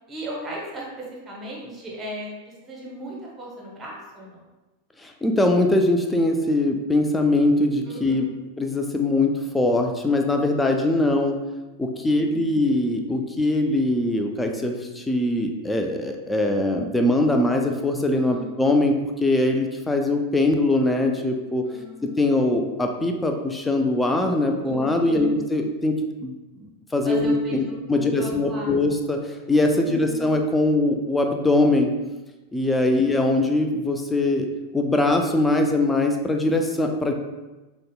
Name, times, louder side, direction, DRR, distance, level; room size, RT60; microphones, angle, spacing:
voice 1, 0.1-4.4 7.9-8.3 12.1-12.5 18.1-18.5 21.7-22.4 24.6-25.3 27.0-28.9 29.7-30.3 32.9-33.6, right 1 dB, 20° right, -3 dB, 0.9 m, -37 dB
voice 2, 5.0-8.2 8.6-11.4 11.8-21.6 22.0-25.9 26.2-26.3 26.6-31.9 32.5-34.5 34.7-37.2, left 2 dB, 10° left, 3 dB, 0.3 m, -22 dB
5.1 x 2.1 x 2.2 m, 1.1 s
figure-of-eight pair, 90°, 0 cm